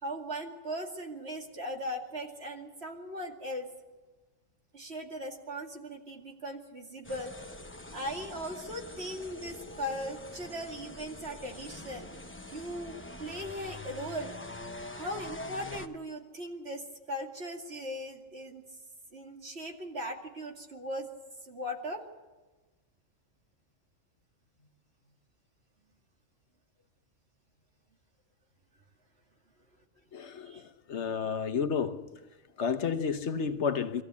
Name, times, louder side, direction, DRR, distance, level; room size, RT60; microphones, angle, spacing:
voice 1, 0.0-3.7 4.7-7.3 7.9-12.1 12.5-14.3 14.9-18.6 19.1-21.1 21.4-22.0 30.5-30.6, equal, 55° right, 2.7 m, -39 dB
sound 1, 7.0-15.9, left 1 dB, 10° left, 0.8 m, -44 dB
voice 2, 30.1-32.1 32.6-34.0, left 6 dB, 65° left, 1.2 m, -31 dB
24.0 x 14.5 x 8.4 m
omnidirectional pair, 1.3 m